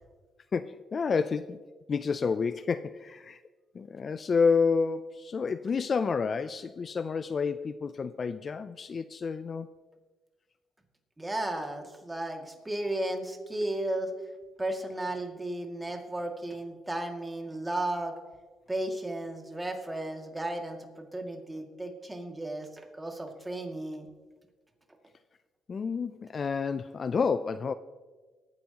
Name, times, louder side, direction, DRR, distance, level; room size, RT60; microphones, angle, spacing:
voice 1, 0.5-1.6 1.9-3.4 3.7-9.7 25.7-27.7, left 5 dB, 45° left, 13 dB, 0.4 m, -29 dB
voice 2, 11.2-14.1 14.6-18.1 18.7-24.1, right 1 dB, 15° right, 2 dB, 2.2 m, -34 dB
22.5 x 9.4 x 2.9 m, 1.4 s
cardioid pair, 90°, 0 cm